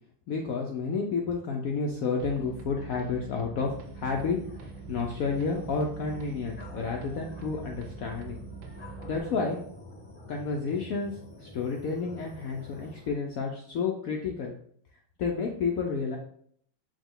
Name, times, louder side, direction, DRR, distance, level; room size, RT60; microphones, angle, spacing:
voice 1, 0.3-8.4 9.0-9.6 10.3-14.5 15.2-16.2, left 4 dB, 80° left, 0 dB, 0.7 m, -31 dB
sound 1, 2.2-9.2, right 7 dB, 80° right, 1.3 m, -44 dB
sound 2, 3.6-13.1, left 1 dB, 5° left, 0.8 m, -48 dB
4.9 x 2.3 x 3.7 m, 0.64 s
omnidirectional pair, 2.0 m